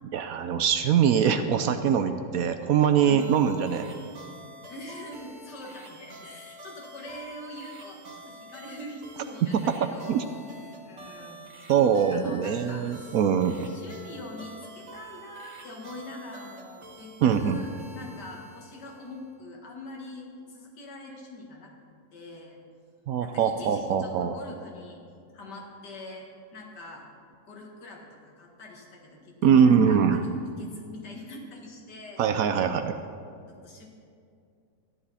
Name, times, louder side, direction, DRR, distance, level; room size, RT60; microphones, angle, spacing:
voice 1, 0.1-3.9 10.1-10.2 11.7-13.6 17.2-17.6 23.1-24.3 29.4-30.2 32.2-32.9, right 7 dB, 70° right, 8 dB, 0.9 m, -22 dB
sound 1, 3.2-19.4, right 2 dB, 50° right, 1.6 m, -47 dB
voice 2, 4.7-10.2 10.6-13.2 13.6-21.7 22.1-22.6 23.2-25.0 25.3-27.0 27.5-32.2 33.5-33.9, left 1 dB, 85° left, 0 dB, 2.3 m, -43 dB
14.0 x 10.5 x 4.2 m, 2.3 s
omnidirectional pair, 1.8 m